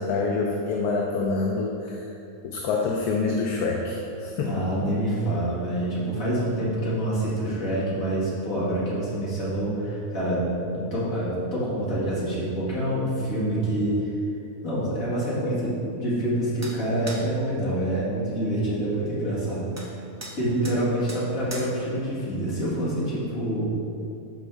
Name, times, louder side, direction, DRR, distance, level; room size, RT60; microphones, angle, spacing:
voice 1, 0.0-2.1 2.4-4.7, left 3 dB, 80° left, 0 dB, 1.1 m, -26 dB
voice 2, 4.4-14.1 14.6-20.0 20.4-24.0, right 1 dB, 60° left, -8 dB, 2.3 m, -27 dB
sound 1, 16.6-16.8 17.1-17.2 19.8-19.9 20.2-20.4 20.6-20.8 21.1-21.2 21.5-21.7, right 1 dB, 20° right, 0.4 m, -37 dB
11.5 x 4.1 x 3.4 m, 2.8 s
omnidirectional pair, 1.7 m